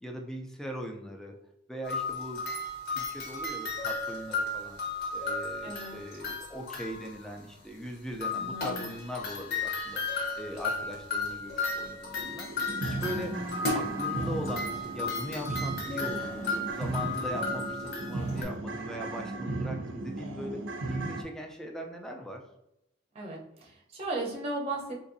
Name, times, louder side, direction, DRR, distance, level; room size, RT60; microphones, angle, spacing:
voice 1, 0.0-1.4 1.7-2.4 2.9-4.8 5.1-10.0 10.4-12.5 12.8-13.3 13.7-14.7 14.9-20.6 20.9-22.4, equal, 5° left, 1 dB, 0.4 m, -40 dB
sound 1, 1.8-7.2 8.2-18.4, left 3 dB, 55° left, 0.8 m, -34 dB
voice 2, 5.6-6.0 8.3-9.0 13.1-13.6 23.1-24.9, right 2 dB, 30° right, -2 dB, 0.7 m, -36 dB
sound 2, 11.2-11.3 11.7-11.8 12.2-21.2, right 2 dB, 80° right, 0.5 m, -36 dB
3.9 x 2.6 x 2.6 m, 0.83 s
head